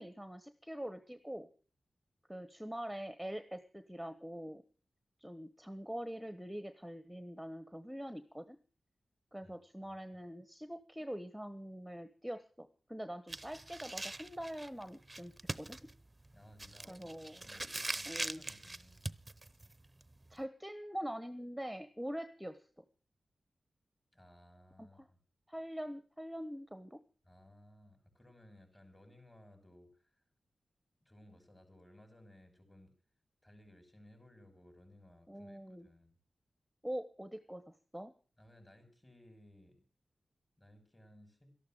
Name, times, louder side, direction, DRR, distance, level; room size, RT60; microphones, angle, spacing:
voice 1, 0.0-1.5 2.3-4.6 5.2-8.6 9.3-15.8 16.9-17.4 18.1-18.4 20.3-22.6 24.8-25.0 25.5-27.0 35.3-35.9 36.8-37.6 37.9-38.1, equal, 5° right, 11 dB, 1.2 m, -44 dB
sound 1, 13.3-20.4, right 2 dB, 25° right, 0.7 m, -43 dB
voice 2, 16.3-17.1 17.4-19.0 24.1-25.2 27.2-30.2 31.0-32.9 33.4-36.2 38.4-39.9 40.6-41.5, left 1 dB, 25° left, 6 dB, 6.4 m, -60 dB
13.0 x 11.5 x 7.6 m, 0.40 s
cardioid pair, 55°, 0 cm